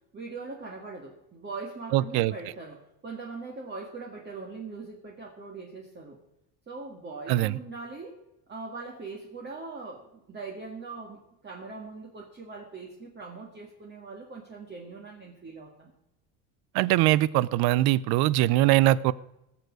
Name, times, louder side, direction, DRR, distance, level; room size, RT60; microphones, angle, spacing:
voice 1, 0.1-6.2 6.7-8.1 8.5-15.9, right 3 dB, 25° right, -1 dB, 1.9 m, -41 dB
voice 2, 1.9-2.3 7.3-7.6 16.7-19.1, right 16 dB, 60° right, 21 dB, 0.6 m, -22 dB
17.5 x 6.9 x 6.2 m, 0.89 s
supercardioid pair, 110°, 43 cm